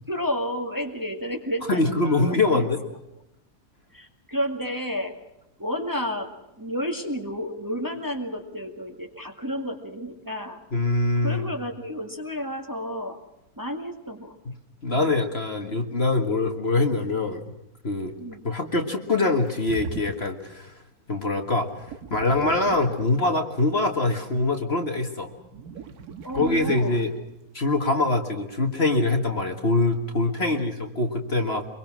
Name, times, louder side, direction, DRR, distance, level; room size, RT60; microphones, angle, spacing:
voice 1, 0.1-2.6 3.9-5.2 5.6-6.3 6.6-10.6 11.2-13.2 13.6-14.4 18.2-18.4 26.2-27.0 30.4-30.7, equal, 10° right, 3 dB, 2.1 m, -31 dB
voice 2, 1.7-2.8 10.7-11.5 14.8-17.4 17.8-18.1 18.4-20.7 21.1-21.7 22.1-25.3 26.3-27.1 27.5-31.6, left 2 dB, 40° left, 4 dB, 1.9 m, -24 dB
sound 1, 19.4-20.6 21.8-23.4 25.2-27.1, right 4 dB, 70° right, 1.7 m, -39 dB
24.5 x 23.0 x 6.2 m, 0.88 s
omnidirectional pair, 1.7 m